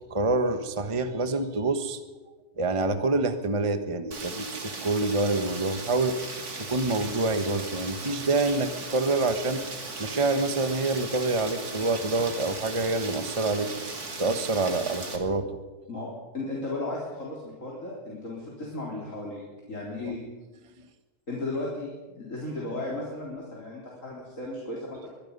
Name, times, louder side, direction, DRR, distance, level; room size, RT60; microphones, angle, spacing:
voice 1, 0.1-2.0 2.6-6.2 6.6-9.6 10.0-13.7 14.2-15.5 20.0-20.1, right 2 dB, 20° right, 8 dB, 1.2 m, -26 dB
Rain, 4.1-15.2, right 3 dB, 65° right, 3.0 m, -37 dB
voice 2, 16.3-19.4 19.7-20.2 21.3-25.1, left 2 dB, 50° left, -3 dB, 4.3 m, -35 dB
24.0 x 21.5 x 5.5 m, 1.2 s
omnidirectional pair, 1.8 m